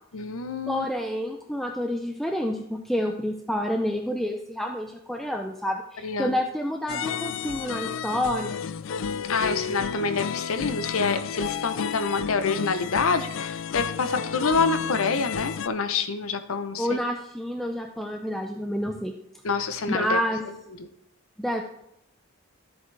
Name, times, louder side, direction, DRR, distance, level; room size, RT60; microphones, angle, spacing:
voice 1, 0.1-0.9 6.0-6.4 9.3-17.0 19.4-20.2, left 4 dB, 85° left, 10 dB, 0.8 m, -27 dB
voice 2, 0.7-8.6 16.8-19.1 19.9-20.4 21.4-21.6, equal, ahead, 3 dB, 0.4 m, -28 dB
sound 1, 6.9-15.7, left 7 dB, 65° left, 0.3 m, -32 dB
12.5 x 7.9 x 3.3 m, 0.81 s
head